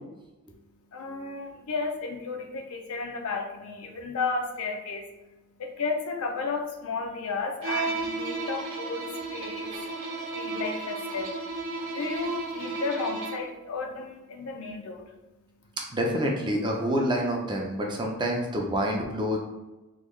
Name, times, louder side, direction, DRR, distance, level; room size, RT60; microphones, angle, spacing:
voice 1, 0.5-15.8, left 4 dB, 75° left, 3 dB, 0.5 m, -34 dB
Bowed string instrument, 7.6-13.6, right 3 dB, 70° right, 0.6 m, -33 dB
voice 2, 15.9-19.4, equal, 20° right, 0 dB, 0.5 m, -27 dB
3.6 x 2.3 x 3.1 m, 1.1 s
head